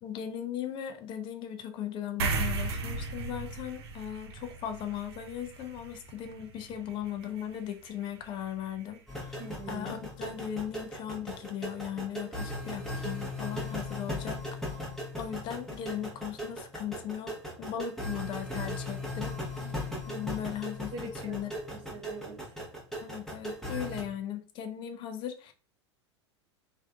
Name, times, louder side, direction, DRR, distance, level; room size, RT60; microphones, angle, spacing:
voice 1, 0.0-9.4 9.7-14.4 15.2-17.3 17.6-20.9 21.2-21.5 23.0-25.5, left 9 dB, 35° left, 0.4 m, -38 dB
sound 1, 2.2-9.0, right 3 dB, 65° right, 0.5 m, -37 dB
sound 2, 9.1-24.0, left 1 dB, ahead, 0.8 m, -38 dB
voice 2, 9.4-9.9 19.6-19.8 20.9-22.5, right 2 dB, 35° right, 0.9 m, -43 dB
3.3 x 2.5 x 2.2 m
figure-of-eight pair, 85°, 15 cm